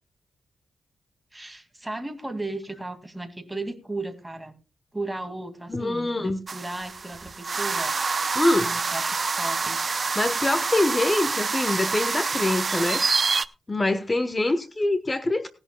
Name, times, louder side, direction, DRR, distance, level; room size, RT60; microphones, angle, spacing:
voice 1, 1.3-4.5 4.9-7.9 8.6-9.8, right 2 dB, 10° right, 2.1 m, -35 dB
voice 2, 5.7-6.4 8.4-8.7 10.2-13.0 13.7-15.5, left 2 dB, 25° left, 1.0 m, -24 dB
sound 1, 6.5-13.5, right 4 dB, 45° right, 0.6 m, -27 dB
19.0 x 11.0 x 2.2 m
cardioid pair, 80°, 0 cm